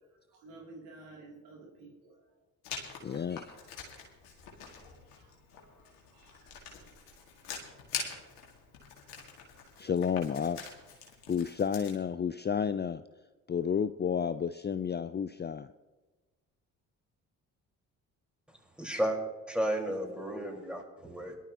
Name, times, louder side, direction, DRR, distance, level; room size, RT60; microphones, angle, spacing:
voice 1, 0.0-2.3 2.8-3.4 3.9-4.1 4.7-4.8 5.1-6.5, right 2 dB, 80° right, -3 dB, 3.2 m, -54 dB
Writing, 2.6-12.0, left 6 dB, 90° left, 2.2 m, -45 dB
voice 2, 3.0-3.5 9.8-10.6 11.3-13.0 13.5-15.7, left 7 dB, 25° left, 12 dB, 0.5 m, -31 dB
voice 3, 18.8-19.2 19.5-21.3, right 1 dB, ahead, 0 dB, 4.7 m, -33 dB
22.0 x 12.0 x 3.0 m, 1.2 s
hypercardioid pair, 45°, 44 cm